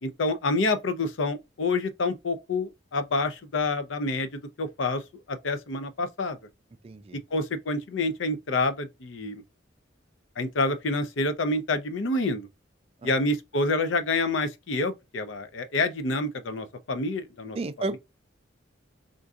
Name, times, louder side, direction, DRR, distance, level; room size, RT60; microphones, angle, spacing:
voice 1, 0.0-5.0 5.3-6.4 7.3-9.4 10.4-12.5 13.0-17.6 17.9-18.0, left 2 dB, 80° left, 0.6 m, -28 dB
voice 2, 6.8-7.2 13.0-13.1 17.6-18.0, right 2 dB, 30° right, 0.3 m, -32 dB
3.7 x 2.6 x 2.3 m
head